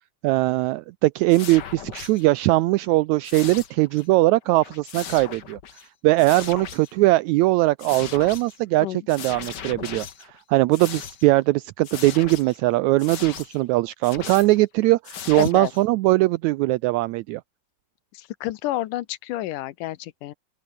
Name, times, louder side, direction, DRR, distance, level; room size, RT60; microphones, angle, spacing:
voice 1, 0.2-5.6 6.0-17.4, right 19 dB, 80° right, 1.7 m, -20 dB
sound 1, 1.3-2.3 3.2-4.1 4.4-5.9 6.2-6.9 7.8-8.6 9.1-10.4 10.7-11.4 11.8-12.6 13.0-13.6 14.0-14.6 15.0-15.8, left 8 dB, 55° left, 1.2 m, -38 dB
voice 2, 15.3-15.7 18.1-20.3, left 15 dB, 80° left, 2.4 m, -30 dB
open air
omnidirectional pair, 3.8 m